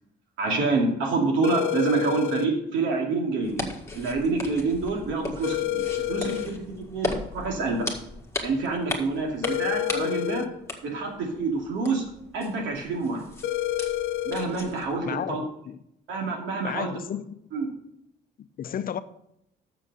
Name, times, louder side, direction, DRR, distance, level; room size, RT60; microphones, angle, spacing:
voice 1, 0.4-6.6 6.9-7.9 8.4-10.4 10.8-12.0 12.3-13.2 14.2-15.4 16.1-16.9 17.5-17.7, right 3 dB, 85° right, 2.6 m, -27 dB
sound 1, 1.4-2.5 5.4-6.5 9.4-10.5 13.4-14.5, left 13 dB, 85° left, 0.7 m, -28 dB
sound 2, 3.4-15.0, left 2 dB, 15° left, 1.9 m, -37 dB
voice 2, 15.1-15.8 16.6-17.4 18.4-19.0, left 9 dB, 50° left, 0.6 m, -33 dB
6.9 x 6.3 x 6.8 m
cardioid pair, 95°, 19 cm